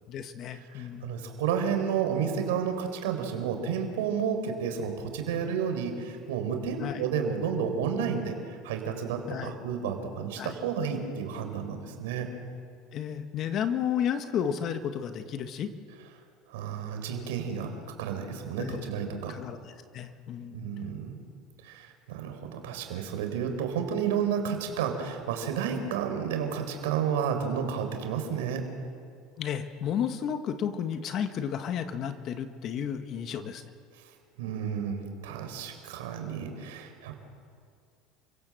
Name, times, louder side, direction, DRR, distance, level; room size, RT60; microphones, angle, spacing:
voice 1, 0.1-1.1 6.8-7.0 9.3-9.6 10.4-10.6 12.9-15.7 18.6-18.9 19.3-20.6 29.4-33.6, left 8 dB, 45° left, 8 dB, 1.5 m, -32 dB
voice 2, 0.7-12.3 16.5-17.7 18.0-19.4 20.5-21.2 21.6-28.6 34.4-37.2, right 7 dB, 90° right, 5 dB, 4.0 m, -31 dB
29.5 x 17.0 x 7.7 m, 2.3 s
supercardioid pair, 120°, 0 cm